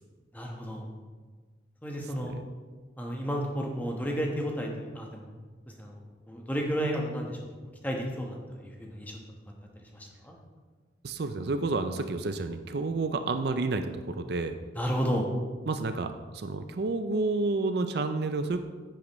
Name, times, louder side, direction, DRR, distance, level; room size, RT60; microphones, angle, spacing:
voice 1, 0.3-0.9 1.8-2.4 3.0-5.3 5.8-7.4 7.8-9.2 9.9-10.3 14.7-15.3, equal, 10° left, 0 dB, 1.1 m, -32 dB
voice 2, 11.0-14.6 15.7-18.6, right 3 dB, 55° right, 8 dB, 0.5 m, -30 dB
10.0 x 8.7 x 3.1 m, 1.4 s
head